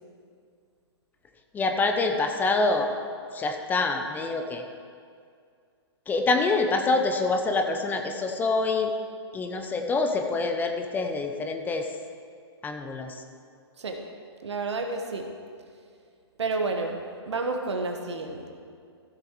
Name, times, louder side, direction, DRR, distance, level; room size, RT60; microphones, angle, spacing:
voice 1, 1.5-2.9 3.3-4.6 6.1-8.9 9.3-11.9 12.6-13.2, left 3 dB, 10° left, 5 dB, 0.7 m, -26 dB
voice 2, 14.4-15.2 16.4-17.0 17.3-18.4, right 3 dB, 85° right, 4 dB, 1.4 m, -30 dB
14.5 x 6.8 x 4.7 m, 2.2 s
hypercardioid pair, 135°, 14 cm